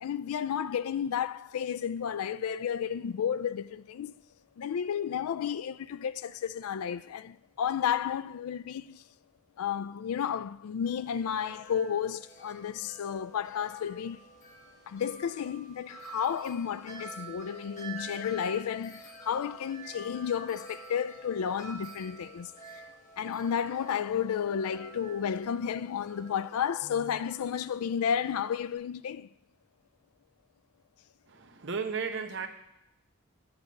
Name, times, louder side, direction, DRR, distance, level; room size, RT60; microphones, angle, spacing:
voice 1, 0.0-4.2 4.6-9.0 9.6-14.2 14.9-22.8 23.2-29.3, left 8 dB, 90° left, 0.4 m, -32 dB
Wind chime, 10.8-28.7, right 3 dB, 35° left, 1.5 m, -49 dB
voice 2, 31.3-32.5, right 5 dB, 55° right, 0.9 m, -34 dB
10.5 x 8.0 x 5.2 m
head